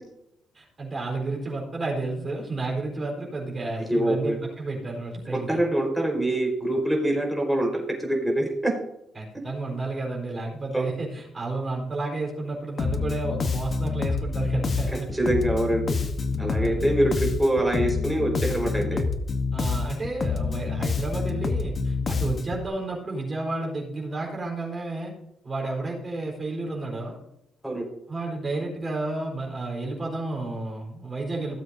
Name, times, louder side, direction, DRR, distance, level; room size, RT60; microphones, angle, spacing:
voice 1, 0.5-5.6 9.1-15.1 16.6-16.9 19.5-25.1 25.4-27.2 28.1-31.6, right 2 dB, 30° right, -2 dB, 4.2 m, -31 dB
voice 2, 3.9-4.4 5.3-8.7 10.7-10.9 14.9-16.0 16.4-19.0 27.6-27.9, right 1 dB, 5° right, -1 dB, 4.4 m, -25 dB
Bass guitar, 12.8-22.7, left 4 dB, 45° left, 1.0 m, -27 dB
16.5 x 7.7 x 2.7 m, 0.80 s
cardioid pair, 90°, 0 cm